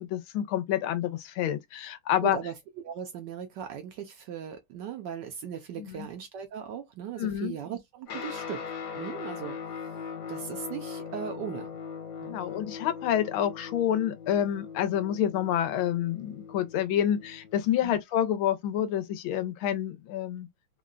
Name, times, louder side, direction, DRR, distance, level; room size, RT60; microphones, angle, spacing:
voice 1, 0.0-2.4 5.8-6.1 7.2-7.6 12.2-20.5, left 10 dB, 85° left, 1.4 m, -28 dB
voice 2, 2.2-2.5 2.8-8.6 9.0-9.6 9.8-10.0 10.3-11.7 12.2-12.4 17.8-18.0, right 8 dB, 75° right, 1.0 m, -38 dB
Guitar, 8.1-17.7, left 6 dB, 60° left, 1.5 m, -40 dB
3.7 x 2.1 x 2.3 m
omnidirectional pair, 2.3 m